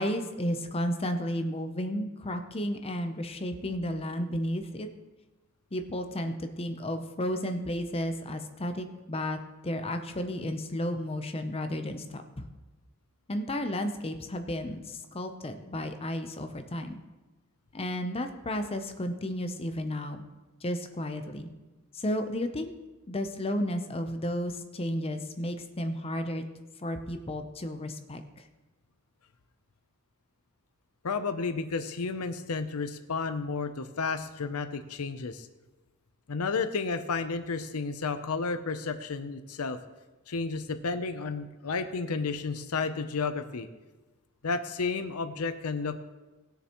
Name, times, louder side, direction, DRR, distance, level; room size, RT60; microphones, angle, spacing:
voice 1, 0.0-4.9 5.7-9.4 9.6-12.4 13.3-17.0 17.7-20.3 20.6-21.5 21.9-22.7 23.1-26.4 26.8-28.2, left 1 dB, 25° left, 7 dB, 0.7 m, -33 dB
voice 2, 31.0-35.5 36.3-39.8 40.3-43.7 44.4-46.0, left 4 dB, 80° left, 9 dB, 0.7 m, -32 dB
19.5 x 6.7 x 3.0 m, 1.2 s
head